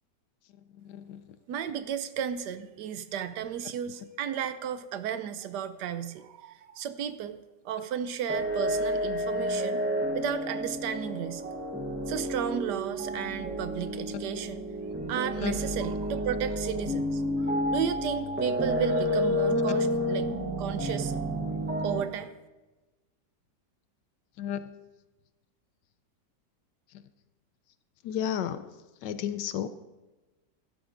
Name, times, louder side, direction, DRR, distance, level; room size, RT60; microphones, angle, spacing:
voice 1, 0.8-1.2 15.4-15.5 24.4-24.6 28.0-28.7 29.0-29.7, left 9 dB, 80° left, 12 dB, 1.2 m, -32 dB
voice 2, 1.5-7.4 7.6-9.8 10.1-11.4 12.1-14.6 15.1-20.3 20.6-21.1 21.8-22.3, right 9 dB, 75° right, 11 dB, 1.2 m, -34 dB
sound 1, 8.3-22.0, equal, 10° right, 0.6 m, -30 dB
15.0 x 12.0 x 2.6 m, 1.1 s
omnidirectional pair, 1.9 m